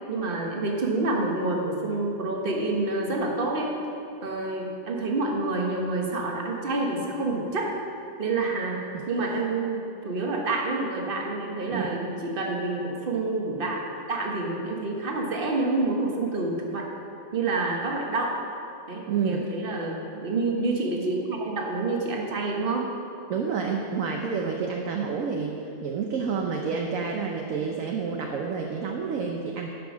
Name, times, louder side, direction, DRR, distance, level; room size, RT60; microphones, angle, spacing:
voice 1, 0.1-3.7 4.2-7.7 8.2-13.8 14.1-16.9 17.3-18.4 18.9-22.9, right 2 dB, 35° right, 0 dB, 1.3 m, -28 dB
voice 2, 11.7-12.2 19.1-19.5 23.3-29.7, right 5 dB, 60° right, 1 dB, 1.0 m, -29 dB
11.5 x 5.8 x 6.1 m, 2.7 s
omnidirectional pair, 1.8 m